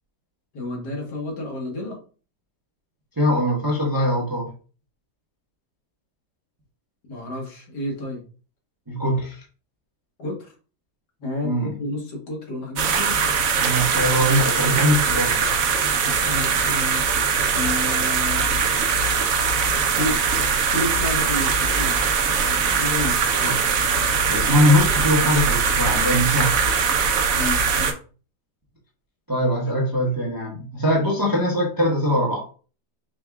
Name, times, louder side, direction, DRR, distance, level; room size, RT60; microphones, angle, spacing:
voice 1, 0.5-2.0 7.1-8.2 10.2-10.5 11.2-13.2 16.0-17.1 17.5-18.5 19.9-20.2 20.7-22.0 22.7-23.2 27.4-27.9, left 2 dB, 70° left, 0 dB, 1.9 m, -30 dB
voice 2, 3.2-4.5 8.9-9.4 11.4-11.8 13.5-15.5 23.4-23.5 24.3-26.6 29.3-32.5, equal, 20° right, -3 dB, 0.6 m, -22 dB
sound 1, 12.8-27.9, right 5 dB, 60° right, 0.9 m, -21 dB
5.1 x 2.4 x 3.5 m, 0.38 s
omnidirectional pair, 1.9 m